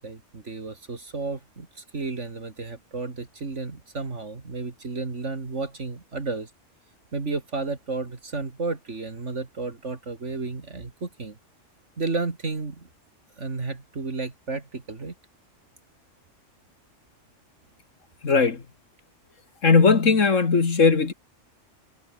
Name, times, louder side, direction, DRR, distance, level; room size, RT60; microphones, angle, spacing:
voice 1, 0.0-6.5 7.1-11.4 12.0-12.9 13.4-15.1, right 3 dB, 65° right, 2.9 m, -32 dB
voice 2, 18.2-18.6 19.6-21.1, left 4 dB, 80° left, 2.5 m, -18 dB
omnidirectional pair, 1.3 m